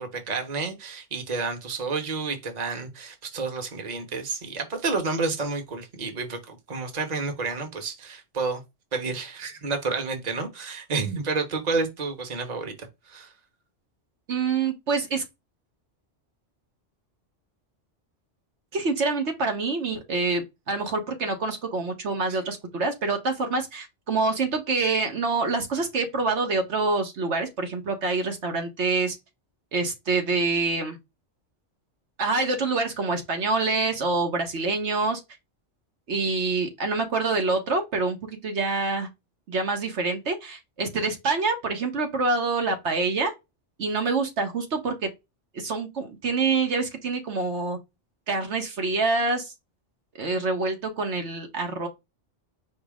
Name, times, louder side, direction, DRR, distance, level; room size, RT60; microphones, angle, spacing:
voice 1, 0.0-8.6 8.9-13.3 22.3-22.4, right 4 dB, 35° right, 1.1 m, -30 dB
voice 2, 14.3-15.2 18.7-29.2 29.7-31.0 32.2-35.2 36.1-39.1 39.5-43.3 43.8-45.1 45.5-47.8 48.3-49.5 50.2-51.9, right 3 dB, 70° right, 1.3 m, -26 dB
5.1 x 2.0 x 4.8 m
omnidirectional pair, 1.2 m